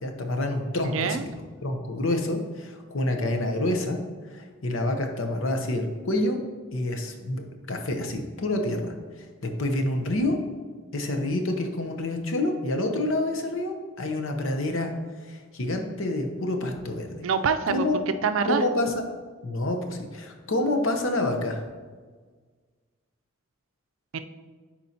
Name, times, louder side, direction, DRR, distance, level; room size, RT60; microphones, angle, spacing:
voice 1, 0.0-4.0 4.3-6.4 6.7-8.9 9.4-10.4 10.9-14.9 15.3-17.2 17.7-18.0 18.5-18.9 19.4-21.6, left 1 dB, 80° left, 5 dB, 0.8 m, -28 dB
voice 2, 0.8-1.2 17.2-17.9 18.2-18.6 24.1-24.2, right 6 dB, 80° right, 9 dB, 0.4 m, -25 dB
9.3 x 4.3 x 2.8 m, 1.5 s
head